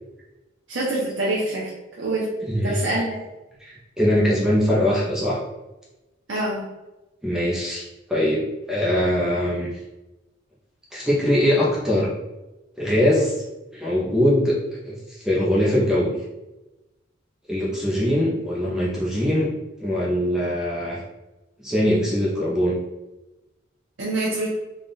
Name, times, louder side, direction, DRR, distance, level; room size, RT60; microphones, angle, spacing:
voice 1, 0.7-1.7 2.0-2.3 2.6-3.2 6.3-6.7 24.0-24.5, right 2 dB, 75° right, -6 dB, 0.9 m, -25 dB
voice 2, 2.4-2.8 3.6-5.4 7.2-9.7 10.9-12.1 12.8-13.4 13.7-14.6 14.8-16.2 17.5-19.5 19.8-21.0 21.6-22.8, equal, 5° right, -6 dB, 0.7 m, -22 dB
3.4 x 2.4 x 4.0 m, 1.0 s
head